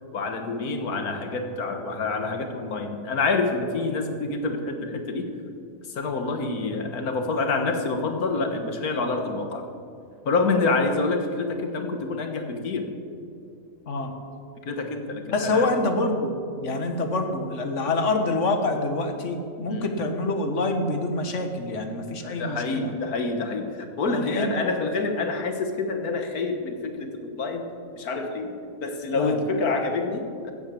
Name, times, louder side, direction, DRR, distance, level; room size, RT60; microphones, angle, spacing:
voice 1, 0.1-5.3 5.9-9.6 10.3-12.9 14.6-15.7 19.7-20.0 22.2-27.7 28.0-28.5 28.8-30.5, left 3 dB, 85° left, 5 dB, 1.8 m, -27 dB
voice 2, 15.3-22.9 24.1-24.6 29.1-29.4, left 2 dB, 55° left, 5 dB, 1.7 m, -26 dB
14.5 x 8.3 x 8.6 m, 2.4 s
omnidirectional pair, 1.5 m